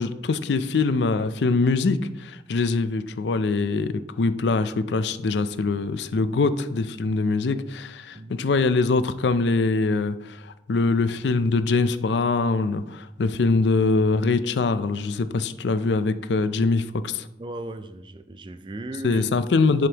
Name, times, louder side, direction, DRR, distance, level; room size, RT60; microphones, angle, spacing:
voice 1, 0.0-17.3 19.0-19.9, left 3 dB, 80° left, 12 dB, 0.5 m, -23 dB
voice 2, 8.1-8.5 17.4-19.2, right 2 dB, 25° right, 10 dB, 0.4 m, -36 dB
11.0 x 5.1 x 2.9 m, 0.89 s
head